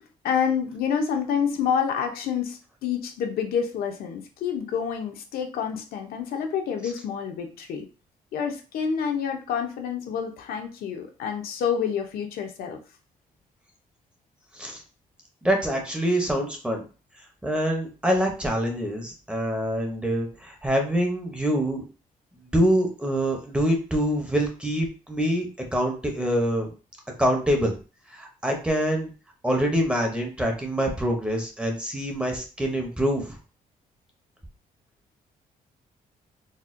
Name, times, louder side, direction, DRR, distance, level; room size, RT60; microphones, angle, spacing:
voice 1, 0.2-7.9 8.3-12.8, left 7 dB, 85° left, 4 dB, 0.6 m, -28 dB
voice 2, 15.4-16.8 17.4-21.8 22.4-26.7 27.2-27.7 28.1-29.1 29.4-33.4, equal, 5° right, 1 dB, 0.6 m, -25 dB
4.1 x 2.1 x 2.5 m, 0.34 s
cardioid pair, 165°, 15 cm